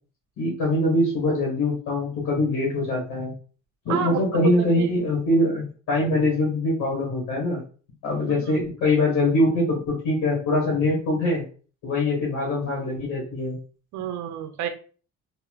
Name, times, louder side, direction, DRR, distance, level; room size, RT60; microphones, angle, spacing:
voice 1, 0.4-3.3 3.8-7.6 8.0-11.4 11.8-13.6, left 1 dB, 85° left, -2 dB, 1.5 m, -23 dB
voice 2, 3.9-4.9 8.3-8.6 13.9-14.7, right 9 dB, 70° right, 7 dB, 0.5 m, -30 dB
2.9 x 2.8 x 2.4 m, 0.39 s
cardioid pair, 90°, 30 cm